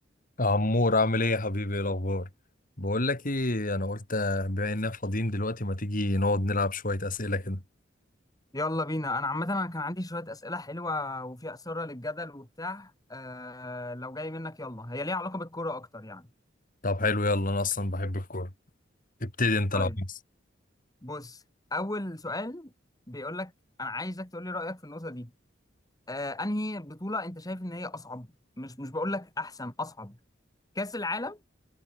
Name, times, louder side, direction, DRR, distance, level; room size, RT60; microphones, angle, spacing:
voice 1, 0.4-2.3 2.8-7.6 16.8-18.5 19.2-20.1, left 2 dB, 45° left, 3.6 m, -27 dB
voice 2, 8.5-16.3 19.7-20.0 21.0-21.4 21.7-22.7 23.1-23.5 23.8-25.3 26.1-28.3 28.6-30.2 30.7-31.4, left 2 dB, 20° left, 3.0 m, -34 dB
head